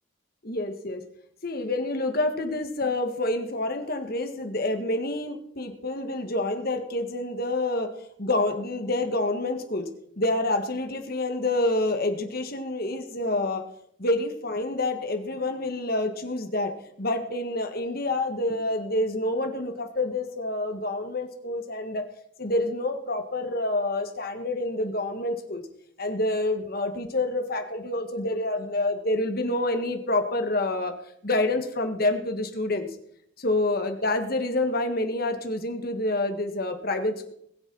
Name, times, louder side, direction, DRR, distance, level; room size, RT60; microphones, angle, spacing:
voice 1, 0.4-1.0 1.4-7.9 8.2-9.9 10.2-13.6 14.0-16.7 17.0-22.1 22.4-25.6 26.0-30.9 31.2-32.9 33.4-37.3, left 2 dB, 50° left, 6 dB, 1.8 m, -27 dB
21.0 x 7.3 x 5.6 m, 0.70 s
head